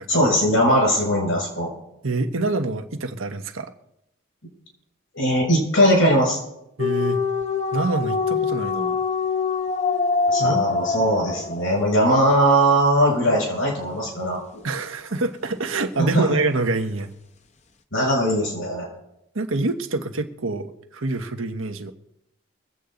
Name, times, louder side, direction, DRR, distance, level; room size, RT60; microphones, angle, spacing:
voice 1, 0.1-1.7 5.1-6.4 10.3-14.4 16.0-16.2 17.9-18.9, equal, 75° left, -1 dB, 6.5 m, -20 dB
voice 2, 2.0-3.7 6.8-7.2 7.7-9.0 10.4-10.8 14.6-17.1 19.3-21.9, right 3 dB, 90° right, 6 dB, 1.2 m, -26 dB
sound 1, 6.8-12.0, left 4 dB, 35° left, 0.7 m, -24 dB
24.0 x 8.3 x 3.9 m, 0.83 s
head